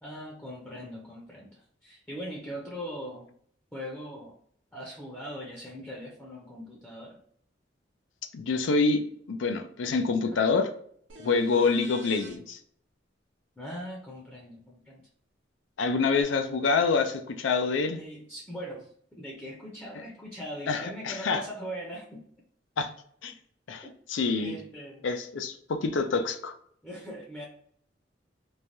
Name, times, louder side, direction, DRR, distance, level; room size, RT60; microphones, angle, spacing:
voice 1, 0.0-3.3 3.7-4.4 4.7-7.2 10.2-10.4 13.6-15.0 17.9-22.2 24.4-25.1 26.8-27.5, equal, 10° left, -2 dB, 0.6 m, -40 dB
voice 2, 8.3-10.7 11.2-12.6 15.8-18.0 20.7-21.4 22.8-22.9 23.2-23.3 23.7-24.6 25.0-26.5, left 4 dB, 85° left, 8 dB, 0.5 m, -26 dB
sound 1, 11.1-12.4 16.2-16.3, right 2 dB, 80° right, 0.7 m, -46 dB
3.2 x 2.2 x 2.6 m, 0.63 s
head